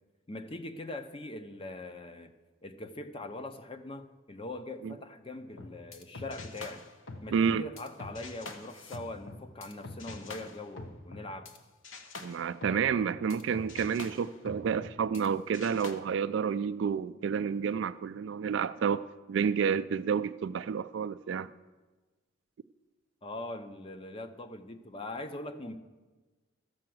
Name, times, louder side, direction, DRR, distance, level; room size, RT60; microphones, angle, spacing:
voice 1, 0.3-2.3 2.6-6.8 7.2-11.5 23.2-25.8, left 2 dB, 25° left, 9 dB, 0.6 m, -42 dB
sound 1, 5.5-11.6 11.8-15.3 15.5-15.9, left 3 dB, 75° left, 1.0 m, -45 dB
voice 2, 7.3-7.6 12.2-19.0 19.3-21.5, right 6 dB, 65° right, 11 dB, 0.3 m, -30 dB
13.0 x 5.8 x 7.7 m, 1.2 s
head